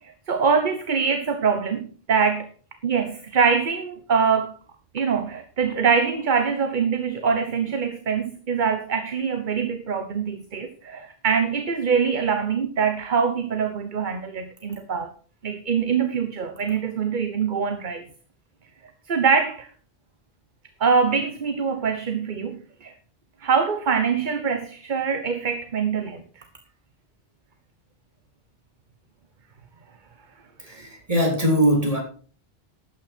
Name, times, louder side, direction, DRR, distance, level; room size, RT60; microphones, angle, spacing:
voice 1, 0.0-2.5 2.8-4.6 4.9-15.1 15.4-18.0 19.1-19.7 20.8-22.9 23.4-26.4, right 6 dB, 50° right, 8 dB, 1.2 m, -24 dB
voice 2, 30.6-32.0, equal, 35° right, 1 dB, 3.6 m, -21 dB
13.0 x 9.0 x 4.4 m, 0.40 s
omnidirectional pair, 1.0 m